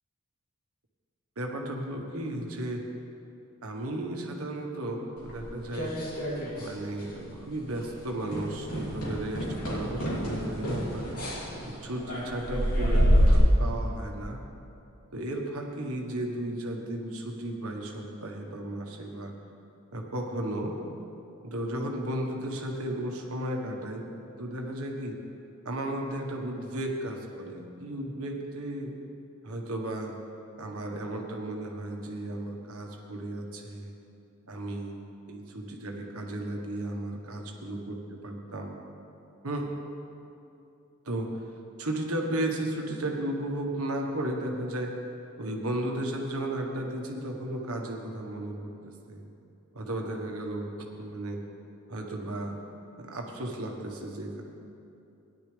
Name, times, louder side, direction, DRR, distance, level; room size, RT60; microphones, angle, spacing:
voice 1, 1.4-2.8 3.6-6.0 6.5-11.1 11.6-14.4 15.1-19.3 19.9-20.7 21.4-24.1 24.4-25.2 25.6-28.9 29.4-30.1 30.6-33.9 34.5-35.0 35.3-38.8 39.4-39.7 41.0-41.3 41.8-44.9 45.4-49.2 49.7-50.7 51.0-51.4 51.9-52.6 53.0-54.4, right 1 dB, 70° right, 2 dB, 1.4 m, -34 dB
sound 1, 5.3-6.7 7.0-7.4 7.7-7.9 8.3-13.4, equal, 80° left, 3.0 m, -27 dB
17.0 x 10.5 x 3.4 m, 2.7 s
head